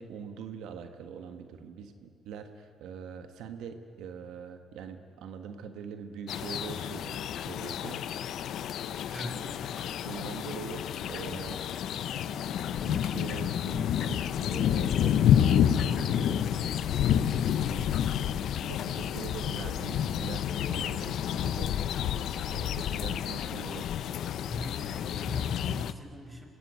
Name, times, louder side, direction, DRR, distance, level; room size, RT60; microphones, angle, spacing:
voice 1, 0.0-8.1 10.0-11.6 12.1-16.6 17.1-21.8 22.1-22.2 22.5-23.9, right 6 dB, 90° right, 8 dB, 1.6 m, -43 dB
sound 1, 6.3-25.9, left 9 dB, 75° left, 0.9 m, -29 dB
voice 2, 9.1-9.6 24.5-26.5, equal, 15° right, 4 dB, 5.3 m, -41 dB
24.5 x 20.0 x 9.6 m, 2.6 s
cardioid pair, 90°, 0 cm